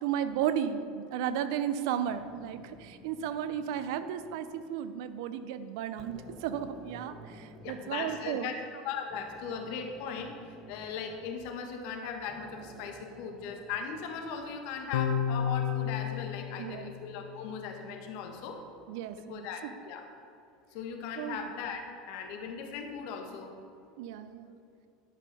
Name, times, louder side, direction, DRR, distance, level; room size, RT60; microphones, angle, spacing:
voice 1, 0.0-8.6 16.6-16.9 18.9-19.7 21.2-21.4 24.0-24.6, right 9 dB, 70° right, 12 dB, 0.6 m, -34 dB
sound 1, 2.0-4.9 5.4-5.6 6.0-8.3 9.1-11.9 12.2-14.6, right 1 dB, 10° right, 1.2 m, -53 dB
voice 2, 7.6-18.6 19.2-20.1 20.7-21.8 22.1-23.5, left 6 dB, 65° left, 3 dB, 1.4 m, -38 dB
sound 2, 14.9-17.5, left 9 dB, 80° left, 0.5 m, -32 dB
11.0 x 5.6 x 5.4 m, 2.6 s
hypercardioid pair, 95°, 2 cm